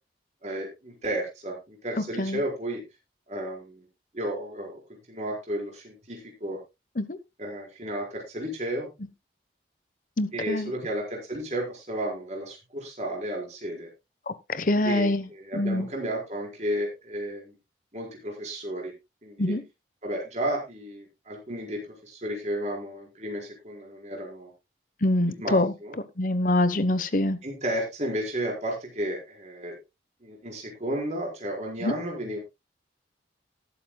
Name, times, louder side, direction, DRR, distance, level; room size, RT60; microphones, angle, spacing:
voice 1, 0.4-2.8 3.3-3.9 4.1-4.8 5.1-6.6 7.4-8.9 10.3-13.9 14.8-17.5 17.9-18.9 19.2-19.6 20.0-24.5 25.4-26.0 27.4-29.8 30.2-32.4, right 1 dB, 40° right, -1 dB, 4.8 m, -33 dB
voice 2, 10.2-10.7 14.3-15.3 15.5-15.9 19.4-19.6 25.0-25.7 26.2-27.4 31.8-31.9, left 1 dB, 45° left, 13 dB, 1.0 m, -25 dB
19.5 x 8.3 x 2.3 m, 0.23 s
head